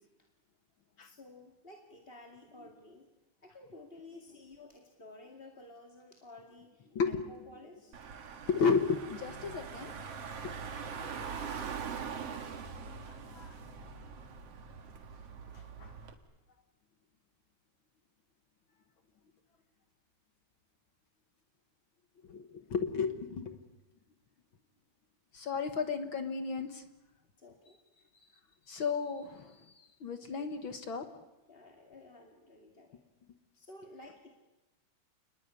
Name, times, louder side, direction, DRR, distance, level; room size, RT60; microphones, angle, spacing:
voice 1, 1.0-3.1 3.4-8.0 27.4-27.8 31.5-33.1 33.5-34.3, left 2 dB, 20° left, 2 dB, 1.9 m, -53 dB
voice 2, 6.9-7.4 8.5-9.9 10.4-10.5 13.0-13.6 15.5-15.9 22.2-23.6 25.3-26.8 28.7-31.1, left 5 dB, 55° left, 8 dB, 1.5 m, -34 dB
Car / Engine, 7.9-16.1, right 6 dB, 50° right, 2.8 m, -43 dB
29.0 x 20.0 x 9.7 m, 1.1 s
omnidirectional pair, 3.7 m